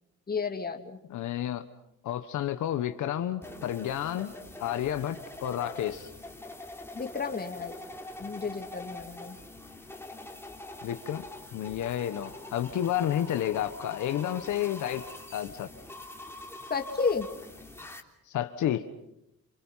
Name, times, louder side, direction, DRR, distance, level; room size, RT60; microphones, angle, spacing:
voice 1, 0.3-1.0 6.9-7.8 8.2-9.4 16.7-17.3, left 5 dB, 30° left, 6 dB, 2.9 m, -32 dB
voice 2, 1.1-1.7 2.0-4.3 4.6-6.1 10.8-11.2 11.5-15.0 15.3-15.7 18.3-18.9, left 11 dB, 75° left, 8 dB, 1.4 m, -31 dB
sound 1, 3.4-18.0, left 2 dB, 10° left, 3.5 m, -44 dB
28.5 x 28.0 x 5.8 m, 0.83 s
cardioid pair, 90°, 30 cm